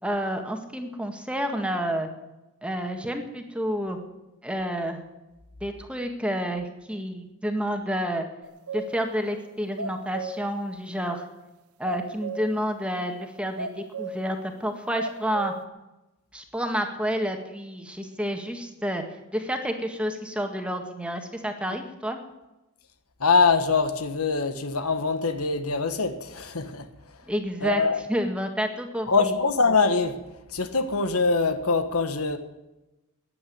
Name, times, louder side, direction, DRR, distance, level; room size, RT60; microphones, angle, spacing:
voice 1, 0.0-2.1 2.6-4.0 4.4-5.0 5.6-8.2 8.7-11.3 11.8-15.5 16.3-19.0 19.3-22.2 27.3-27.8 28.1-29.3, equal, 5° right, 1.8 m, -29 dB
sound 1, 8.4-9.1 9.5-9.6 9.8-10.6 11.9-12.6 13.6-14.3 15.0-15.6, right 3 dB, 85° right, 1.3 m, -35 dB
voice 2, 23.2-26.9 27.6-28.0 29.1-30.2 30.5-32.4, left 4 dB, 85° left, 1.5 m, -23 dB
15.0 x 10.0 x 9.5 m
head